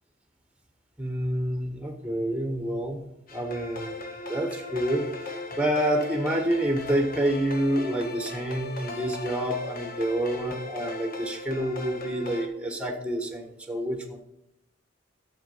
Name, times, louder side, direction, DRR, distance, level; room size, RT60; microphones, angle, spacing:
voice 1, 1.0-3.0 3.3-5.1 5.5-14.2, right 1 dB, 5° right, 4 dB, 1.4 m, -28 dB
sound 1, 3.3-12.5, left 2 dB, 45° left, 1.4 m, -38 dB
12.5 x 7.4 x 5.6 m, 0.84 s
head